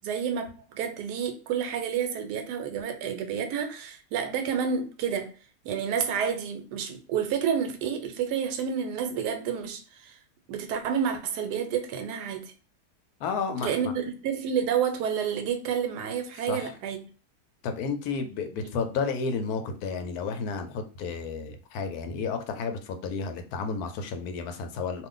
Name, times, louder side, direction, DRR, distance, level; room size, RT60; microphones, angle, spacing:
voice 1, 0.0-5.3 5.6-10.2 10.5-12.5 13.6-17.0 18.5-18.7, right 7 dB, 80° right, 1.2 m, -29 dB
voice 2, 13.2-13.9 16.4-16.7 17.6-25.1, left 5 dB, 75° left, 1.0 m, -32 dB
2.5 x 2.4 x 3.7 m
omnidirectional pair, 1.8 m